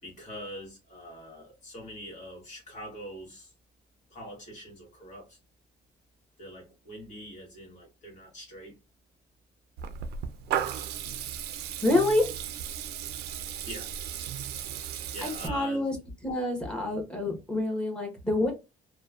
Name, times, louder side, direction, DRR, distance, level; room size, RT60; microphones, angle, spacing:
voice 1, 0.0-3.5 4.1-5.4 6.4-8.8 13.6-13.9 15.1-15.9, equal, 45° left, 1.3 m, -43 dB
Water tap faucet / Liquid, 9.8-15.5, right 9 dB, 75° right, 0.4 m, -35 dB
voice 2, 11.8-12.3 15.2-16.0 16.2-18.5, left 2 dB, 5° left, 1.0 m, -27 dB
2.8 x 2.1 x 2.4 m
cardioid pair, 110°, 17 cm